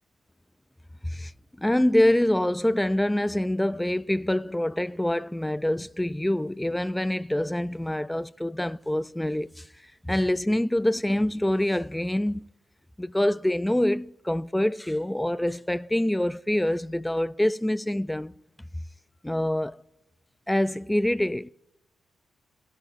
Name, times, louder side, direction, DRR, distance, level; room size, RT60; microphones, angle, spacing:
voice 1, 1.6-9.7 10.0-12.5 13.0-18.4 19.2-19.8 20.5-21.5, left 1 dB, 10° left, 0.3 m, -25 dB
23.0 x 10.5 x 2.6 m
supercardioid pair, 55°, 0 cm